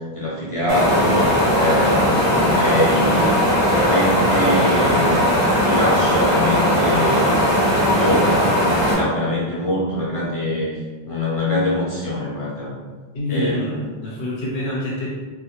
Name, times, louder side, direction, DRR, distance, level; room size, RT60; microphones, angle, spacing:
voice 1, 0.0-7.5 7.8-8.5 8.9-10.8 11.0-12.7 13.3-13.9, left 1 dB, 45° left, -6 dB, 0.4 m, -23 dB
sound 1, 0.7-8.9, equal, 30° right, 0.6 m, -18 dB
voice 2, 13.1-15.1, equal, 75° left, -5 dB, 0.9 m, -26 dB
2.1 x 2.1 x 2.8 m, 1.4 s
omnidirectional pair, 1.0 m